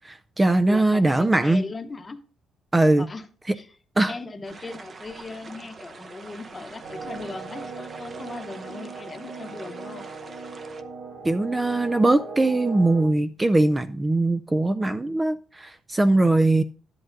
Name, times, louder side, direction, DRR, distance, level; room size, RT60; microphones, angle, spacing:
voice 1, 0.0-1.6 2.7-3.1 3.5-3.6 4.0-4.2 11.2-16.6, right 2 dB, 15° right, 11 dB, 0.4 m, -21 dB
voice 2, 0.7-2.2 3.0-3.3 3.5-3.7 4.1-10.1, left 3 dB, 25° left, 8 dB, 0.9 m, -38 dB
sound 1, 4.4-10.8, right 3 dB, 35° right, 0.8 m, -44 dB
sound 2, 6.8-13.0, right 4 dB, 75° right, 4.2 m, -38 dB
12.0 x 10.5 x 2.6 m, 0.41 s
cardioid pair, 110°, 0 cm